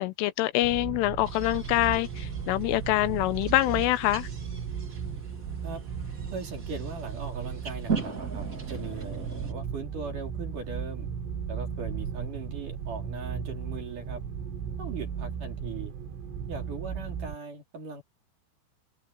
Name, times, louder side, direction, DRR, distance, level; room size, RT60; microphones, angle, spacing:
voice 1, 0.0-4.3, left 17 dB, 85° left, 3.2 m, -25 dB
sound 1, 0.6-17.4, right 7 dB, 80° right, 5.1 m, -36 dB
sound 2, 1.2-9.5, right 5 dB, 25° right, 2.2 m, -40 dB
voice 2, 6.3-11.1 11.5-14.2 14.8-15.9 16.5-18.0, right 4 dB, 45° right, 4.3 m, -39 dB
omnidirectional pair, 5.8 m